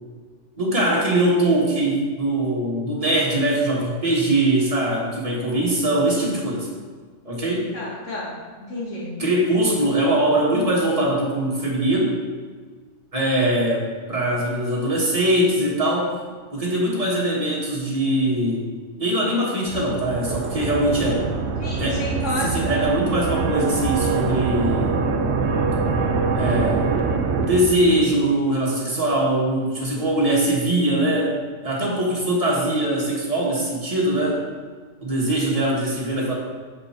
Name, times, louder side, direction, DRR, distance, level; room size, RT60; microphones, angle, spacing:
voice 1, 0.6-6.7 7.2-7.7 9.2-12.2 13.1-16.1 16.5-18.7 19.0-21.3 21.8-22.0 22.5-25.0 26.3-27.0 27.4-34.4 35.0-36.3, right 1 dB, 30° right, -4 dB, 1.6 m, -22 dB
voice 2, 7.7-9.1 21.6-22.6, left 1 dB, 80° left, -5 dB, 2.0 m, -31 dB
sound 1, 19.7-28.2, right 4 dB, 70° right, 0.9 m, -24 dB
6.7 x 5.3 x 4.4 m, 1.5 s
omnidirectional pair, 1.3 m